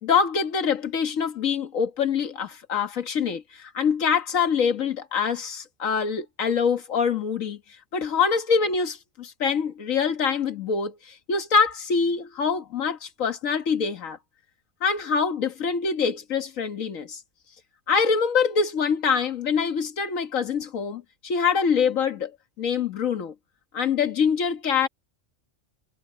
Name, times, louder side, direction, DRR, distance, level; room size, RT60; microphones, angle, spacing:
voice 1, 0.0-7.6 7.9-14.2 14.8-17.2 17.9-22.3 22.6-23.3 23.7-24.9, left 6 dB, 80° left, 1.8 m, -25 dB
omnidirectional pair, 1.4 m